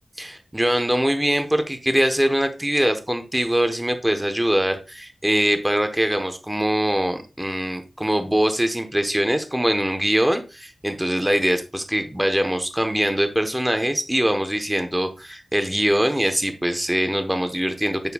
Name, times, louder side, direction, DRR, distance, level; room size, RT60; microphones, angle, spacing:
voice 1, 0.2-18.0, right 1 dB, 10° right, 7 dB, 1.0 m, -22 dB
10.5 x 4.5 x 2.3 m, 0.31 s
wide cardioid pair, 70°, 0 cm